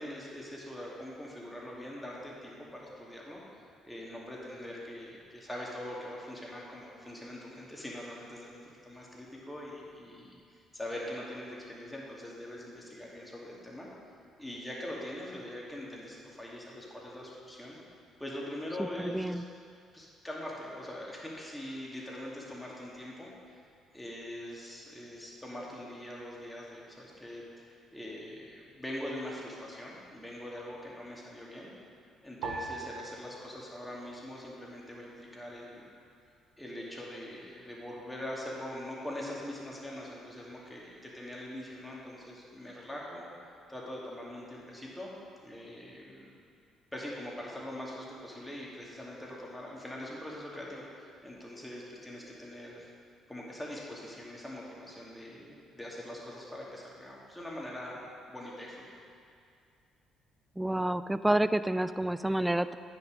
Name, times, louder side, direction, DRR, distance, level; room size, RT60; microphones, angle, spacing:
voice 1, 0.0-3.4 3.8-13.9 14.4-17.8 18.2-19.4 19.9-23.6 23.9-31.7 32.2-35.9 36.6-43.3 43.7-45.1 45.4-46.4 46.9-52.9 53.3-58.9, left 1 dB, 10° left, -4 dB, 2.3 m, -43 dB
voice 2, 19.0-19.4 60.6-62.7, right 1 dB, 10° right, 13 dB, 0.3 m, -29 dB
sound 1, 32.4-34.9 35.2-36.1 36.7-37.1, right 3 dB, 70° right, 0.8 m, -44 dB
9.0 x 6.1 x 5.1 m, 2.4 s
hypercardioid pair, 50°, 0 cm